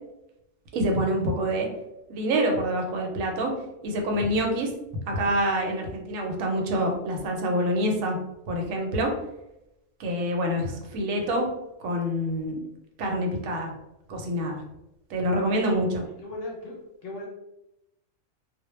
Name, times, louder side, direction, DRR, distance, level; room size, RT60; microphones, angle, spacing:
voice 1, 0.7-1.7 2.1-3.5 3.8-4.7 5.1-8.2 8.5-9.1 10.0-11.5 11.8-12.6 13.0-13.7 14.1-14.6 15.1-16.0, equal, 85° right, 2 dB, 1.0 m, -26 dB
voice 2, 16.2-16.8 17.0-17.3, left 1 dB, 60° left, -2 dB, 0.6 m, -36 dB
2.1 x 2.1 x 2.9 m, 0.88 s
omnidirectional pair, 1.4 m